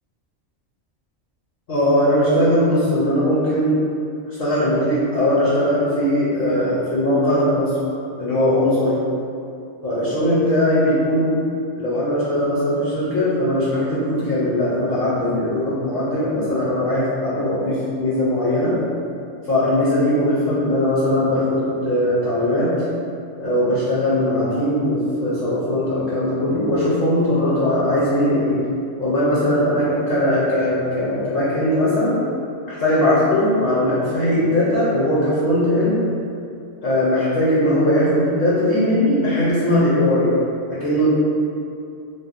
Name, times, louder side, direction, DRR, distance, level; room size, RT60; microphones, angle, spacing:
voice 1, 1.7-3.8 4.4-7.8 8.2-9.0 9.8-11.3 11.8-18.8 19.5-22.7 23.4-28.6 29.0-32.2 32.7-36.0 36.8-40.3 40.8-41.1, left 1 dB, 55° left, -9 dB, 0.7 m, -19 dB
3.4 x 2.1 x 2.5 m, 2.6 s
omnidirectional pair, 1.3 m